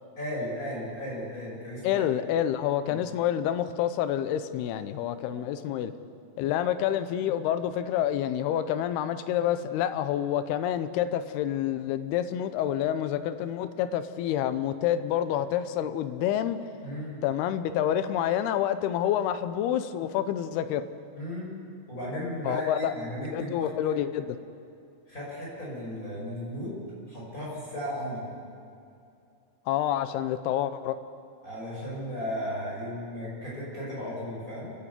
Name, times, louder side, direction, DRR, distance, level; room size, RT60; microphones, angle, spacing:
voice 1, 0.2-2.0 2.9-3.0 16.8-17.2 21.1-21.5 21.9-23.7 25.1-26.7 27.1-28.3 31.4-34.7, left 1 dB, 20° left, -6 dB, 6.2 m, -35 dB
voice 2, 1.8-5.9 6.4-16.6 17.2-20.9 22.4-22.9 23.3-24.4 29.7-31.0, left 10 dB, 80° left, 11 dB, 2.7 m, -28 dB
29.0 x 11.0 x 8.3 m, 2.6 s
omnidirectional pair, 4.9 m